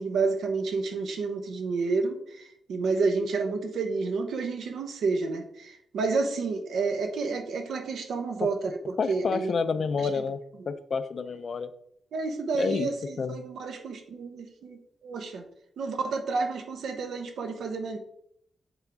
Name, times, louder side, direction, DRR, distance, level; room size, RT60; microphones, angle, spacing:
voice 1, 0.0-9.5 10.0-10.2 10.6-10.7 12.1-15.5 15.8-18.0, right 4 dB, 80° right, 5 dB, 0.9 m, -30 dB
voice 2, 9.0-10.4 10.7-11.7 12.5-12.9 13.2-13.4, left 5 dB, 50° left, 11 dB, 0.5 m, -29 dB
7.2 x 3.5 x 3.9 m, 0.72 s
wide cardioid pair, 125°, 0 cm